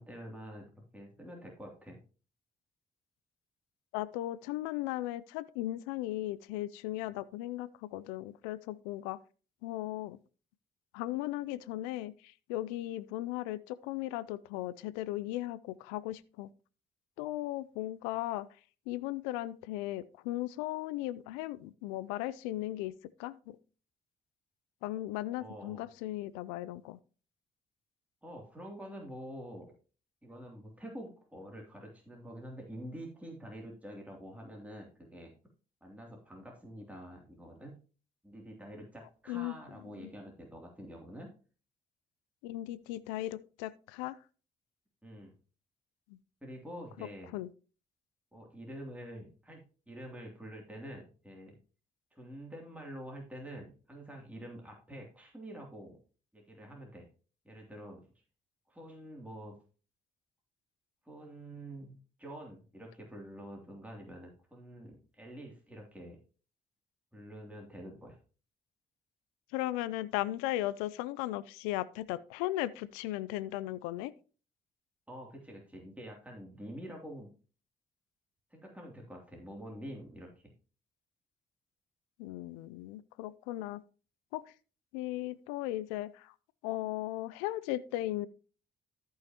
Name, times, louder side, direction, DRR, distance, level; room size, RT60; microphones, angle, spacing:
voice 1, 0.0-2.0 25.4-25.9 28.2-29.7 30.2-35.3 35.8-37.8 38.2-41.3 45.0-45.3 46.4-47.3 48.3-51.6 52.1-56.0 56.3-57.1 57.4-58.0 58.7-59.6 61.0-66.2 67.1-68.2 75.1-77.3 78.5-80.5, equal, 5° right, 2.9 m, -47 dB
voice 2, 3.9-9.2 9.6-10.2 10.9-16.5 17.2-18.5 18.9-22.9 23.2-23.6 24.8-27.0 39.3-39.6 42.4-44.2 46.1-46.2 47.3-47.5 69.5-74.1 82.2-83.8 84.3-84.4 84.9-86.3 86.6-88.3, left 15 dB, 85° left, 0.5 m, -37 dB
14.0 x 5.6 x 2.9 m
hypercardioid pair, 50°, 21 cm